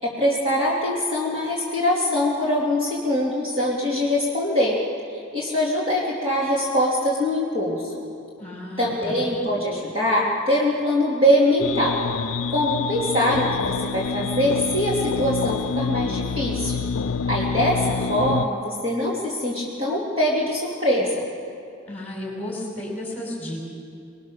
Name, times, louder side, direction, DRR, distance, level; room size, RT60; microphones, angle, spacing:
voice 1, 0.0-4.8 5.3-8.0 8.8-12.0 12.5-13.5 13.8-16.8 17.3-21.2, left 1 dB, 25° right, -6 dB, 3.2 m, -23 dB
voice 2, 8.4-9.2 21.8-23.6, left 1 dB, 10° left, -2 dB, 5.1 m, -33 dB
sound 1, 11.6-18.5, left 5 dB, 80° left, 0.5 m, -27 dB
26.0 x 19.5 x 6.6 m, 2.5 s
head